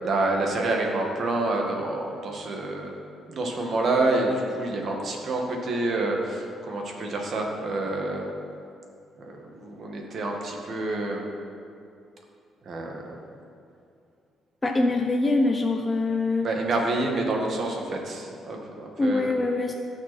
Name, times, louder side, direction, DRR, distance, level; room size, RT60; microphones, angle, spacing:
voice 1, 0.0-3.0 3.3-8.3 9.2-11.3 12.6-13.2 16.4-19.3, right 2 dB, 55° right, 1 dB, 2.0 m, -28 dB
voice 2, 14.6-16.5 19.0-19.7, left 2 dB, 20° left, 2 dB, 0.8 m, -24 dB
16.5 x 6.3 x 4.4 m, 2.5 s
cardioid pair, 90°, 0 cm